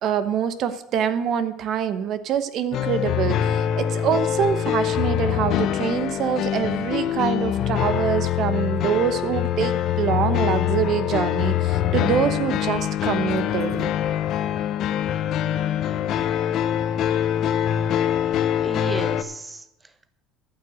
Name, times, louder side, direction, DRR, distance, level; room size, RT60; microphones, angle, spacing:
voice 1, 0.0-13.9, right 8 dB, 55° right, 12 dB, 1.1 m, -25 dB
sound 1, 2.7-19.2, left 10 dB, 55° left, 0.8 m, -24 dB
voice 2, 18.6-20.1, right 3 dB, 15° right, 12 dB, 0.7 m, -34 dB
13.0 x 5.8 x 7.9 m, 0.89 s
supercardioid pair, 105°, 0 cm